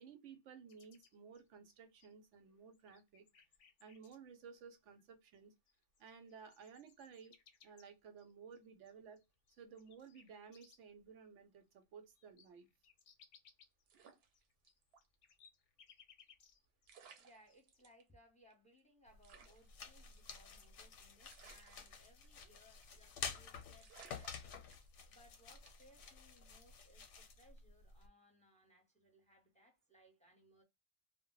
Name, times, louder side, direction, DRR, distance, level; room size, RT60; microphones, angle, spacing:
voice 1, 0.0-3.2 3.8-5.5 6.0-7.4 7.6-9.2 9.6-12.7, right 6 dB, 85° right, 0.9 m, -56 dB
sound 1, 0.7-2.3 2.7-4.2 5.3-5.4 5.7-11.0 11.4-11.5 11.8-16.9 17.1-17.8, left 7 dB, 65° left, 0.7 m, -67 dB
sound 2, 13.9-15.1 15.4-15.5 16.5-16.6 16.9-18.0 18.5-18.6 18.8-18.9 19.2-20.8 21.3-22.5 22.8-23.1 23.4-23.5 23.8-25.2 25.7-26.0, right 6 dB, 65° right, 0.8 m, -62 dB
voice 2, 17.1-24.7 25.1-30.6, equal, 10° left, 0.6 m, -67 dB
sound 3, 19.1-28.1, left 6 dB, 90° left, 0.9 m, -51 dB
2.1 x 2.1 x 3.7 m
omnidirectional pair, 1.2 m